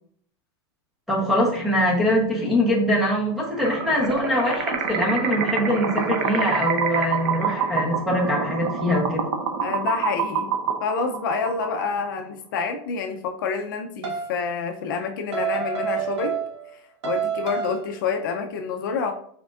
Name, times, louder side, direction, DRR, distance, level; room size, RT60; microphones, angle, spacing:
voice 1, 1.1-9.3, left 1 dB, ahead, -3 dB, 0.9 m, -23 dB
sound 1, 3.6-12.0, right 6 dB, 45° right, 0.7 m, -27 dB
voice 2, 9.6-10.5 10.8-16.4 16.7-19.1, left 5 dB, 50° left, 4 dB, 0.5 m, -28 dB
sound 2, 14.0-14.4 15.3-16.7 17.0-17.9, right 7 dB, 80° right, 1.4 m, -28 dB
4.9 x 4.3 x 2.4 m, 0.64 s
supercardioid pair, 180°, 14 cm